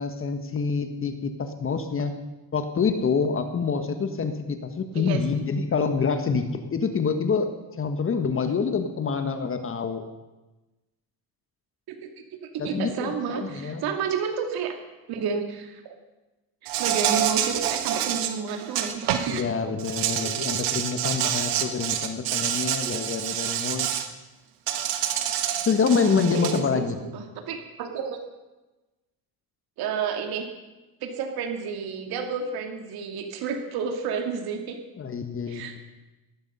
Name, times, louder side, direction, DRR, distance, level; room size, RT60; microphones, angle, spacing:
voice 1, 0.0-2.1 2.5-7.5 7.8-10.0 12.6-13.8 19.3-24.0 25.6-27.0 35.0-35.8, left 5 dB, 35° left, 7 dB, 1.4 m, -26 dB
voice 2, 11.9-14.8 15.1-16.0 16.6-19.3 20.2-20.6 26.3-28.2 29.8-30.5 31.0-34.8 35.5-35.8, right 6 dB, 70° right, 4 dB, 2.6 m, -31 dB
Insect, 16.7-19.4 19.8-24.1 24.7-26.6, right 10 dB, 90° right, 1.5 m, -27 dB
18.0 x 12.0 x 5.6 m, 1.1 s
cardioid pair, 115°, 39 cm